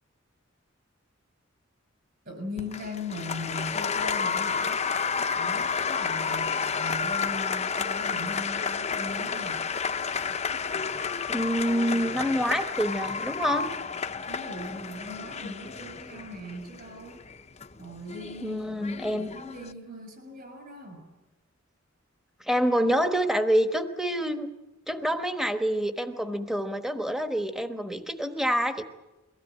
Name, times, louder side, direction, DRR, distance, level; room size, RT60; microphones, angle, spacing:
voice 1, 2.2-9.7 14.3-17.3 17.8-21.1, left 1 dB, 50° right, 6 dB, 6.4 m, -40 dB
Applause, 2.6-19.7, left 6 dB, 35° left, 0.7 m, -31 dB
voice 2, 11.3-13.8 18.4-19.3 22.4-24.5 24.9-28.8, equal, ahead, 7 dB, 1.1 m, -27 dB
22.5 x 16.5 x 9.1 m, 1.1 s
head